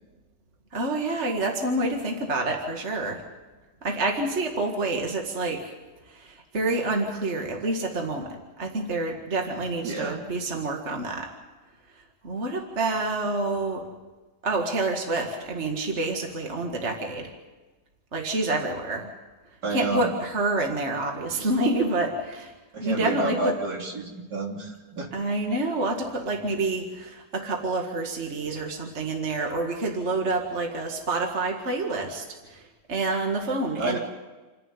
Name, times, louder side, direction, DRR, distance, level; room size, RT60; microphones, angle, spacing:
voice 1, 0.7-3.2 3.8-5.7 6.1-11.3 12.2-13.9 14.4-17.3 18.1-19.1 19.7-22.5 22.8-23.5 25.1-34.0, right 2 dB, 40° right, 2 dB, 2.2 m, -28 dB
voice 2, 9.8-10.2 19.6-20.1 22.7-25.1 33.8-34.0, right 2 dB, 70° right, -1 dB, 3.9 m, -30 dB
28.0 x 11.0 x 9.7 m, 1.2 s
omnidirectional pair, 1.8 m